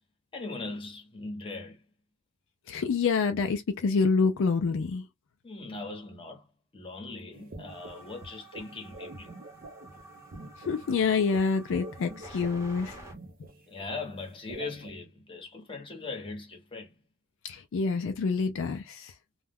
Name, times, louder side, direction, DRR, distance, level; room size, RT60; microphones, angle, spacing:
voice 1, 0.3-1.8 5.4-6.5 6.7-9.4 13.7-17.0, left 3 dB, 25° left, 0.9 m, -40 dB
voice 2, 2.7-5.1 10.6-13.0 17.4-19.1, left 4 dB, 60° left, 0.4 m, -27 dB
sound 1, 7.3-14.9, right 1 dB, 40° right, 0.6 m, -46 dB
sound 2, 7.7-13.1, right 2 dB, 15° right, 0.8 m, -50 dB
2.3 x 2.1 x 3.4 m
head